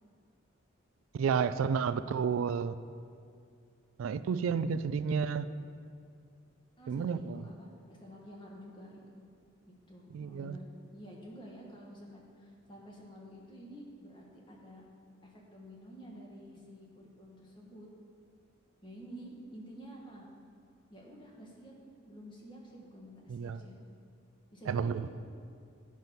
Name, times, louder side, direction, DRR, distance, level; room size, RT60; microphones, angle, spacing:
voice 1, 1.1-2.8 4.0-5.5 6.9-7.4 10.1-10.6 23.3-23.6 24.7-25.1, right 6 dB, 75° right, 12 dB, 0.3 m, -31 dB
voice 2, 6.8-7.7 8.0-9.0 9.9-10.6 10.9-14.8 15.2-17.9 18.8-20.3 20.9-21.7 22.1-23.7 24.5-25.1, equal, 25° left, -2 dB, 1.4 m, -50 dB
9.3 x 6.1 x 5.4 m, 2.3 s
head